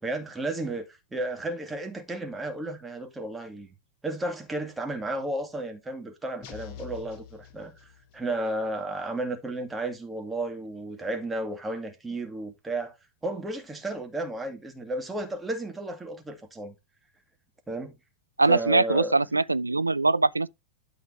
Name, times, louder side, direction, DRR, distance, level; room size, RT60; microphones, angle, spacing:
voice 1, 0.0-3.7 4.0-7.9 8.1-13.0 13.2-16.7 17.7-18.0 18.5-19.2, right 1 dB, 10° right, 2.2 m, -33 dB
sound 1, 6.4-8.3, left 9 dB, 40° left, 2.4 m, -45 dB
voice 2, 18.4-20.5, right 3 dB, 80° right, 0.4 m, -22 dB
12.0 x 5.2 x 3.3 m
figure-of-eight pair, 90°, 0 cm